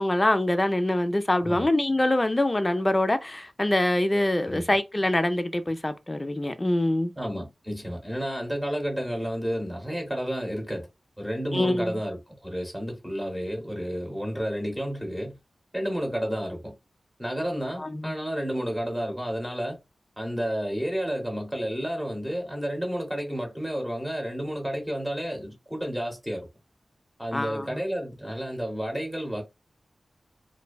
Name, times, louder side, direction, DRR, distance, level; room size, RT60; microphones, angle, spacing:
voice 1, 0.0-7.1 11.5-12.0 17.8-18.1 27.3-27.8, left 1 dB, 25° left, 0.3 m, -24 dB
voice 2, 7.2-10.9 11.2-15.4 15.7-16.7 17.2-19.8 20.2-26.5 27.2-29.4, equal, 10° right, 0.9 m, -31 dB
2.6 x 2.1 x 2.2 m
wide cardioid pair, 85°, 0 cm